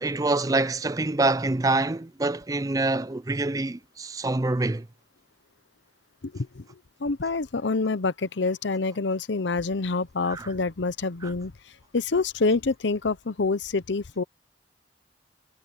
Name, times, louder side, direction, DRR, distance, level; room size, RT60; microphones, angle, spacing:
voice 1, 0.0-4.9 10.3-10.5 11.2-11.3, right 2 dB, 20° right, 0.4 m, -26 dB
voice 2, 6.3-6.6 7.0-11.5 11.9-14.2, left 3 dB, 80° left, 0.8 m, -26 dB
head